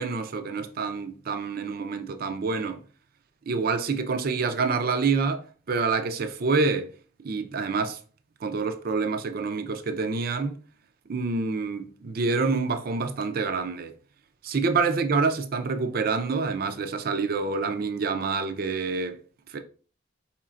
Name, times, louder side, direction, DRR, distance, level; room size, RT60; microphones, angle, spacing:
voice 1, 0.0-2.8 3.5-6.9 7.2-8.0 8.4-10.6 11.1-13.9 14.4-19.2 19.5-19.6, right 4 dB, 50° right, 0.4 m, -27 dB
4.7 x 4.3 x 2.4 m
head